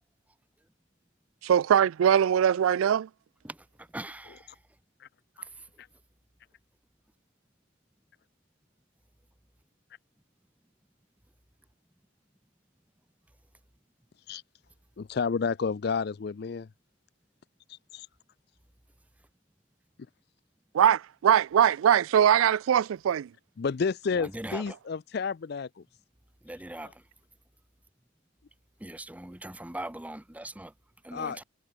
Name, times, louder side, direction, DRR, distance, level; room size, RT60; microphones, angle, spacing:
voice 1, 1.4-3.1 20.7-23.3, right 9 dB, 80° right, 0.3 m, -22 dB
voice 2, 3.4-4.6 5.6-5.7 24.1-24.6 26.4-27.0 28.8-30.7 31.0-31.4, right 1 dB, 5° right, 0.6 m, -41 dB
voice 3, 15.0-16.7 17.7-18.1 23.6-25.8 26.8-26.9 31.1-31.4, left 5 dB, 50° left, 0.4 m, -31 dB
head